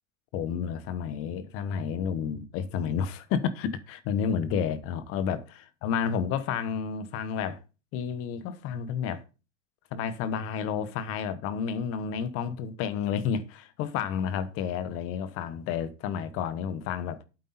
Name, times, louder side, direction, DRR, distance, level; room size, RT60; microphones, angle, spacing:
voice 1, 0.3-7.6 7.9-9.2 9.9-17.2, left 7 dB, 35° left, 1.1 m, -31 dB
8.3 x 8.3 x 4.1 m
supercardioid pair, 140°, 40 cm